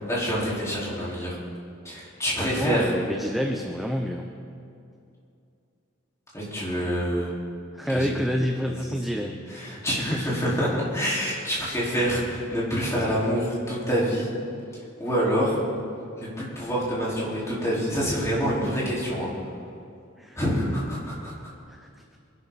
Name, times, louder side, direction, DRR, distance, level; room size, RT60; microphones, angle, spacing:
voice 1, 0.1-1.3 1.8-2.9 6.3-7.3 7.9-8.1 8.8-8.9 9.2-14.3 15.0-15.6 16.2-19.3 20.3-21.3, equal, 15° left, -7 dB, 4.6 m, -26 dB
voice 2, 2.4-4.3 7.7-10.3 20.2-20.4 21.2-21.3 21.7-22.0, equal, ahead, 2 dB, 0.8 m, -29 dB
24.5 x 11.5 x 4.2 m, 2.5 s
head